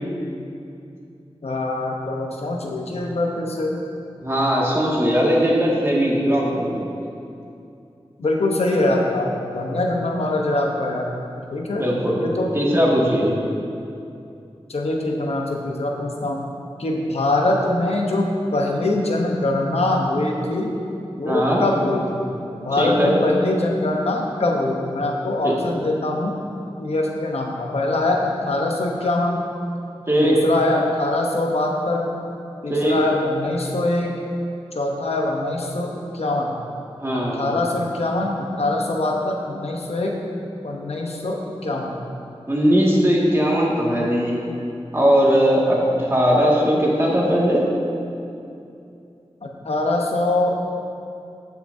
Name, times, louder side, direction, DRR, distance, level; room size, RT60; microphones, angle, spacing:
voice 1, 1.4-3.8 8.2-11.1 11.5-11.9 12.2-12.5 14.7-16.4 16.8-18.3 18.5-20.7 21.2-22.3 22.6-26.4 26.8-29.4 30.2-32.1 32.6-34.2 34.7-36.6 37.1-40.2 40.6-41.9 45.9-46.1 49.4-50.7, left 2 dB, 75° left, 0 dB, 0.9 m, -23 dB
voice 2, 4.2-6.8 11.8-12.2 12.5-13.3 21.2-21.6 22.8-23.2 25.4-25.5 30.1-30.4 32.7-33.0 37.0-37.6 42.5-44.5 44.9-47.6, equal, 25° right, -5 dB, 1.9 m, -19 dB
15.5 x 5.8 x 2.7 m, 2.6 s
wide cardioid pair, 65°, 11 cm